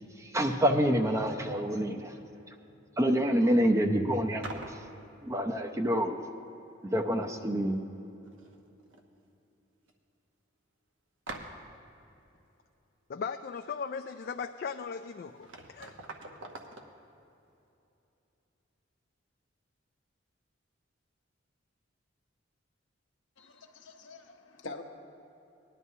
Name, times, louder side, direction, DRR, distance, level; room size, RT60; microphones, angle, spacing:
voice 1, 0.2-2.1 3.0-4.7 5.2-6.2 6.9-7.8, equal, 15° right, 4 dB, 0.5 m, -27 dB
sound 1, 4.4-4.9 6.9-7.0 7.3-7.9 8.2-9.0 9.3-9.4 9.9-10.0 11.3-11.8 14.8-14.9 15.3-16.9, right 2 dB, 80° right, 1.0 m, -45 dB
voice 2, 13.1-16.0, left 6 dB, 50° left, 7 dB, 0.3 m, -38 dB
voice 3, 23.4-24.8, left 3 dB, 75° left, 3 dB, 0.9 m, -45 dB
18.5 x 11.0 x 2.7 m, 2.9 s
head